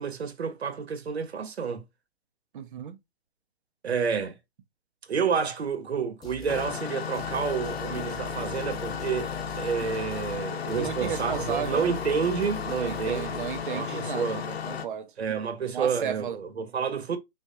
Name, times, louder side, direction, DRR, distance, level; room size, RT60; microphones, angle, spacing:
voice 1, 0.0-1.8 3.8-4.4 5.1-9.3 9.6-13.4 13.7-14.4 15.2-17.2, right 6 dB, 85° right, 1.0 m, -29 dB
voice 2, 2.5-3.0 10.8-11.8 12.7-15.1 15.7-16.4, right 8 dB, 55° right, 0.8 m, -34 dB
sound 1, 6.2-6.7 7.1-10.4 10.7-13.6, right 5 dB, 10° left, 1.5 m, -43 dB
Engine starting, 6.5-14.8, left 7 dB, 75° left, 0.8 m, -34 dB
5.4 x 2.7 x 2.4 m
hypercardioid pair, 135°, 31 cm